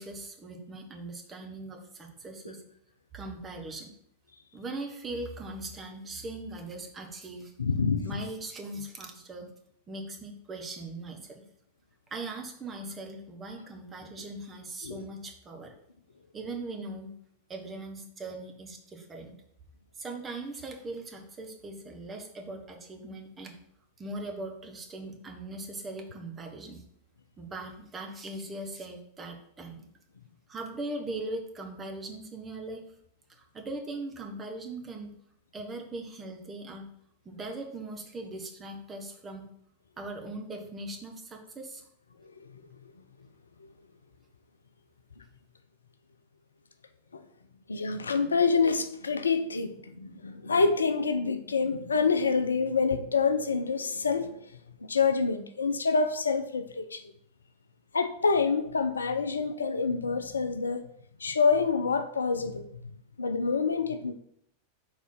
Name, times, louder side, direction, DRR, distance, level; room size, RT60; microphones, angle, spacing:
voice 1, 0.0-2.6 3.1-3.9 4.5-7.5 8.0-9.5 9.9-11.5 12.1-15.7 16.3-17.2 17.5-19.3 20.0-23.6 24.0-26.8 27.4-29.7 30.5-32.8 33.3-35.2 35.5-36.9 37.2-39.5 40.0-41.8, right 2 dB, 20° right, 1.3 m, -40 dB
voice 2, 7.6-8.2 14.8-15.0 47.1-47.2 47.7-54.4 54.9-57.0 57.9-60.8 61.2-62.7 63.2-64.1, left 5 dB, 75° left, 0.5 m, -27 dB
4.6 x 4.0 x 5.8 m
figure-of-eight pair, 90°, 0 cm